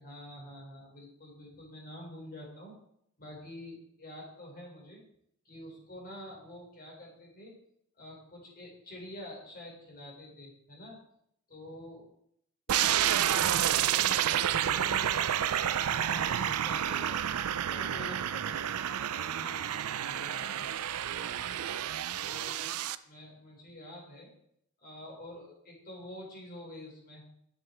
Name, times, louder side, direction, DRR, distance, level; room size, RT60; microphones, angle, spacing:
voice 1, 0.0-2.7 3.2-5.0 5.4-7.5 8.0-11.0 11.5-12.1 12.7-15.2 15.7-17.2 17.7-20.7 22.1-22.7 23.0-24.3 24.8-27.2, left 1 dB, 45° left, -1 dB, 4.2 m, -47 dB
sound 1, 12.7-22.9, right 10 dB, 75° right, 0.4 m, -30 dB
10.5 x 7.9 x 4.5 m, 0.72 s
head